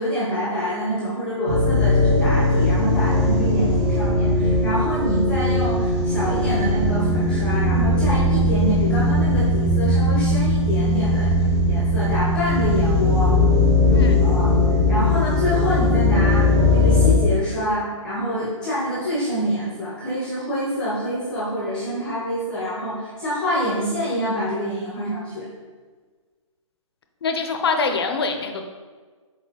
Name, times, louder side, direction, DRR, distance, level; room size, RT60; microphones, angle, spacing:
voice 1, 0.0-11.3 11.7-13.4 14.2-14.5 14.9-25.5, equal, 5° left, -8 dB, 0.6 m, -26 dB
sound 1, 1.5-17.1, left 2 dB, 55° right, 1.3 m, -19 dB
voice 2, 13.9-14.3 27.2-28.7, left 4 dB, 50° left, 5 dB, 0.5 m, -24 dB
4.7 x 4.0 x 2.8 m, 1.4 s
hypercardioid pair, 165°, 17 cm